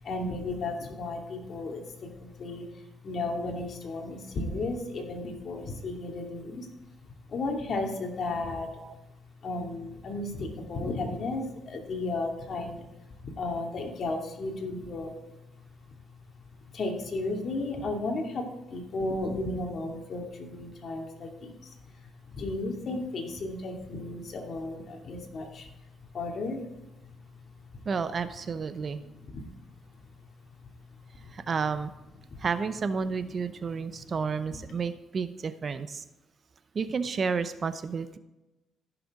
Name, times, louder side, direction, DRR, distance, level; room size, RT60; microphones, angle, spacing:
voice 1, 0.0-6.7 7.3-8.7 9.4-12.9 13.2-15.2 16.7-22.0 22.3-25.7 26.1-26.6 27.0-27.3 29.3-29.4 31.1-31.3 32.3-32.4, left 2 dB, 55° left, 1 dB, 2.4 m, -34 dB
voice 2, 27.9-29.0 31.3-31.9 32.4-36.0 36.7-38.2, right 5 dB, 45° right, 12 dB, 0.7 m, -31 dB
15.0 x 6.8 x 3.7 m, 0.99 s
cardioid pair, 90°, 0 cm